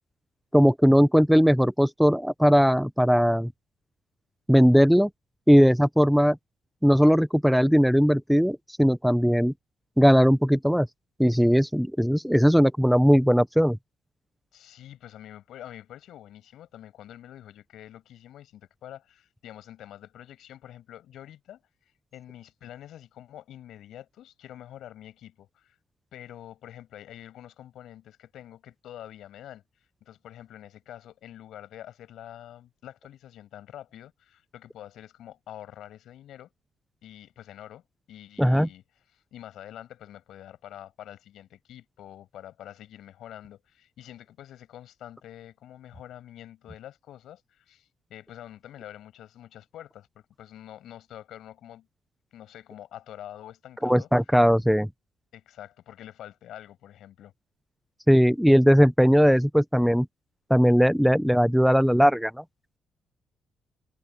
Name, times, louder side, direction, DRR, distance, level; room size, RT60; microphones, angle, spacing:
voice 1, 0.5-3.5 4.5-5.1 5.5-6.4 6.8-9.5 10.0-10.9 11.2-13.8 38.4-38.7 53.8-54.9 58.1-60.1 60.5-62.4, equal, ahead, 0.7 m, -19 dB
voice 2, 14.5-21.6 22.1-25.8 26.1-36.5 37.0-38.8 39.1-51.9 52.3-54.1 55.3-57.3, left 12 dB, 80° left, 7.0 m, -46 dB
cardioid pair, 90°, 0 cm